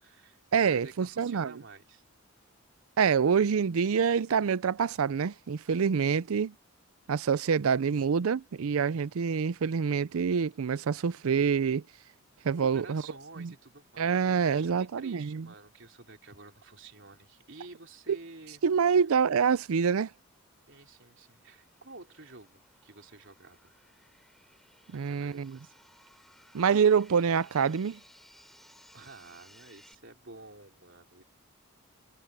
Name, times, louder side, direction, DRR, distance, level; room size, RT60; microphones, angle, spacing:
voice 1, 0.0-2.0 7.4-7.5 8.0-8.1 12.6-18.6 18.9-19.0 20.7-23.7 24.9-25.8 28.9-31.2, right 3 dB, 60° right, 3.5 m, -51 dB
voice 2, 0.5-1.5 3.0-6.5 7.1-11.8 12.4-13.0 13.4-13.5 14.0-15.4 18.6-20.1 24.9-25.6 26.5-28.0, right 6 dB, 80° right, 0.5 m, -26 dB
sound 1, 20.1-30.0, equal, ahead, 4.6 m, -60 dB
head